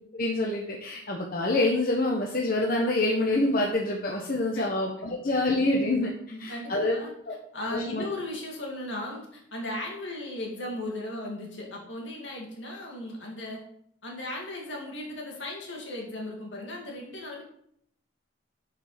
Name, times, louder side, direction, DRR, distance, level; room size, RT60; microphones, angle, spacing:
voice 1, 0.1-6.1 6.4-6.9 7.3-7.4 7.7-8.0, left 2 dB, 45° left, -1 dB, 1.0 m, -26 dB
voice 2, 6.3-7.1 7.5-13.6 14.0-17.4, left 1 dB, 70° left, -1 dB, 2.4 m, -36 dB
7.6 x 5.0 x 5.7 m, 0.70 s
head